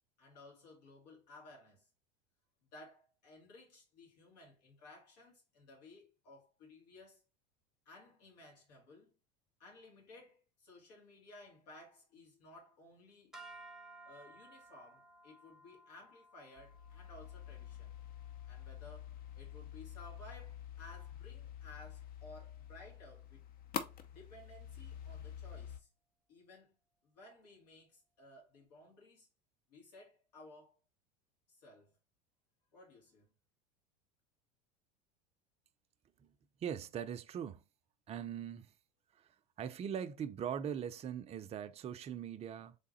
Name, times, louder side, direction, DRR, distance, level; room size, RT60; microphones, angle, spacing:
voice 1, 0.2-1.9 2.7-7.2 7.9-9.1 9.6-13.3 14.0-17.9 18.5-23.4 24.1-25.9 26.3-26.7 27.0-29.3 29.7-30.8 31.5-31.9 32.7-33.3, left 2 dB, 75° left, 2.4 m, -57 dB
sound 1, 13.3-19.7, right 2 dB, ahead, 0.8 m, -58 dB
sound 2, 16.6-25.8, left 9 dB, 45° left, 0.7 m, -47 dB
voice 2, 36.6-37.6 38.1-38.7 39.2-39.3 39.6-42.8, right 8 dB, 30° right, 0.5 m, -41 dB
3.6 x 3.6 x 4.1 m
hypercardioid pair, 85°, 21 cm